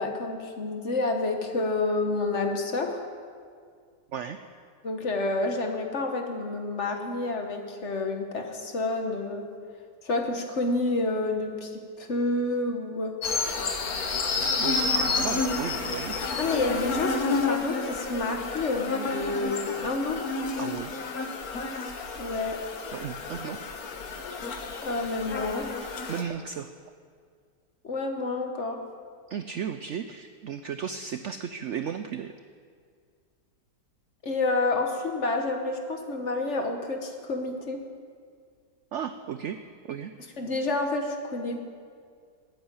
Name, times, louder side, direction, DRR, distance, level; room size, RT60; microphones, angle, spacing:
voice 1, 0.0-3.0 4.8-9.5 10.0-13.1 14.9-15.0 16.4-20.2 22.2-22.6 24.8-25.7 27.8-28.8 34.2-37.8 40.4-41.6, left 2 dB, 45° left, 4 dB, 1.5 m, -29 dB
sound 1, 13.2-26.2, left 4 dB, 60° left, 1.5 m, -30 dB
voice 2, 14.4-16.2 20.6-20.9 22.9-23.6 26.1-26.7 29.3-32.3 38.9-39.6 39.8-40.1, right 8 dB, 75° right, 9 dB, 0.6 m, -35 dB
13.0 x 8.8 x 8.8 m, 2.1 s
omnidirectional pair, 1.8 m